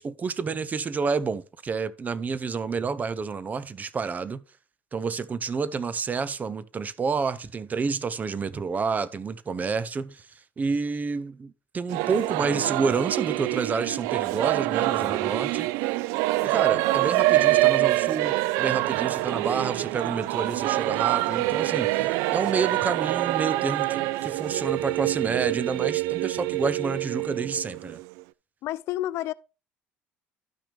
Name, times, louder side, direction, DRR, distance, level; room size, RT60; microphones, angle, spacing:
voice 1, 0.0-4.4 4.9-10.3 10.6-15.7 16.4-28.0, right 5 dB, 35° right, 0.7 m, -29 dB
Singing / Musical instrument, 11.9-28.2, right 18 dB, 80° right, 0.3 m, -25 dB
voice 2, 28.6-29.3, left 14 dB, 70° left, 0.4 m, -29 dB
12.0 x 5.9 x 3.4 m
supercardioid pair, 75°, 5 cm